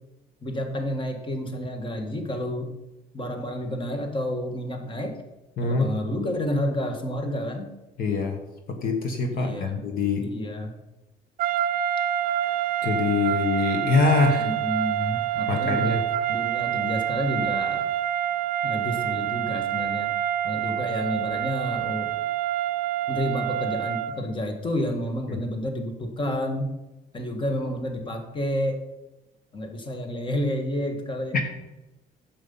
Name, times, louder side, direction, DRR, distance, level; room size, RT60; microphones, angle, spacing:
voice 1, 0.4-2.7 3.1-5.2 5.6-7.7 9.3-9.8 10.2-10.7 14.4-16.0 16.3-17.9 18.6-20.1 20.4-22.2 23.1-26.7 27.1-28.8 29.5-31.4, left 1 dB, 30° left, 5 dB, 1.7 m, -30 dB
voice 2, 5.6-5.9 8.0-8.4 8.8-10.2 12.8-14.5 15.5-16.0 25.3-25.4 31.3-31.4, left 4 dB, 60° left, 5 dB, 1.5 m, -24 dB
sound 1, 11.4-24.2, right 12 dB, 60° right, 0.5 m, -27 dB
9.4 x 7.3 x 5.5 m, 1.0 s
cardioid pair, 110°, 17 cm